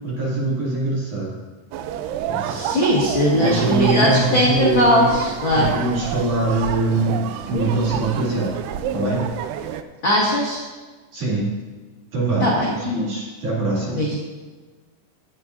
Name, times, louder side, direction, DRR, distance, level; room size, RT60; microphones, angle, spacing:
voice 1, 0.0-1.4 2.3-2.6 3.3-5.2 5.5-7.2 7.5-8.6 8.9-9.3 11.1-11.5 12.1-14.0, right 2 dB, 45° right, -7 dB, 3.5 m, -23 dB
sound 1, 1.7-9.8, right 9 dB, 85° right, 2.3 m, -29 dB
voice 2, 2.4-5.7 10.0-10.6 12.4-12.7 13.9-14.2, left 1 dB, 50° left, -6 dB, 1.4 m, -19 dB
18.5 x 8.4 x 2.6 m, 1.3 s
omnidirectional pair, 5.2 m